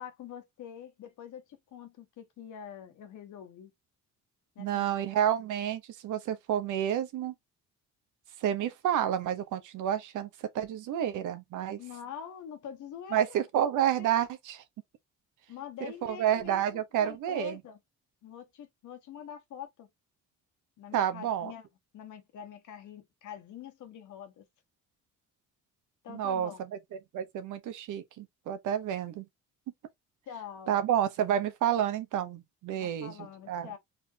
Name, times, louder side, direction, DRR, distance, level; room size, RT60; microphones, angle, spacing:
voice 1, 0.0-3.7 4.5-5.0 11.8-13.7 14.0-14.1 15.5-17.8 18.2-19.9 20.8-21.7 21.9-24.4 26.0-26.6 30.3-30.8 32.8-33.8, left 8 dB, 75° left, 1.4 m, -45 dB
voice 2, 4.6-7.3 8.4-10.3 10.5-11.8 13.1-14.6 15.8-17.6 20.9-21.5 26.1-26.5 27.1-29.2 30.7-33.1 33.5-33.7, right 10 dB, 80° right, 0.9 m, -29 dB
4.4 x 3.3 x 2.8 m
cardioid pair, 90°, 30 cm